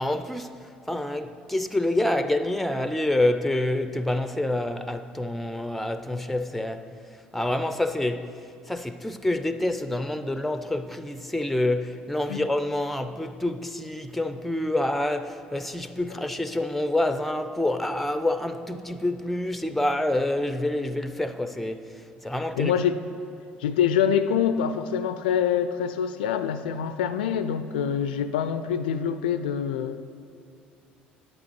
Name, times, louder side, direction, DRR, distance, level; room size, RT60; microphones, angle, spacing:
voice 1, 0.0-22.7, left 1 dB, 5° left, 0.5 m, -27 dB
voice 2, 22.6-22.9 23.6-30.0, left 8 dB, 70° left, 0.3 m, -25 dB
11.0 x 7.9 x 4.5 m
figure-of-eight pair, 55°, 5 cm